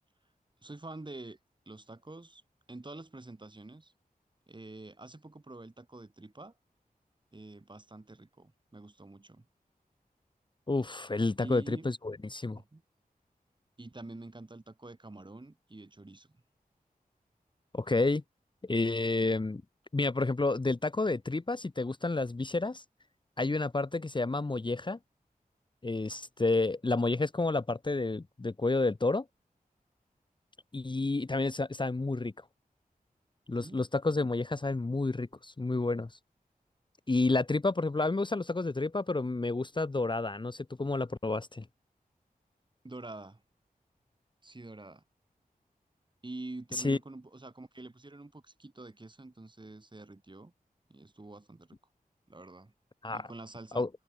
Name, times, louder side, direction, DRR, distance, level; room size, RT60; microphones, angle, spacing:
voice 1, 0.6-1.4 1.7-2.4 2.7-3.9 4.5-6.5 7.3-9.5 11.4-11.9 12.5-12.8 13.8-16.4 33.6-33.9 42.8-43.4 44.4-45.0 46.2-50.5 50.9-51.8 52.3-52.7 53.1-53.9, right 2 dB, 30° right, 6.4 m, -47 dB
voice 2, 10.7-12.6 17.7-18.2 18.6-19.6 19.9-22.8 23.4-25.0 25.8-29.2 30.7-32.3 33.5-36.1 37.1-41.6 46.7-47.0 53.0-53.3 53.7-53.9, left 3 dB, 30° left, 1.2 m, -30 dB
open air
wide cardioid pair, 90°, 15 cm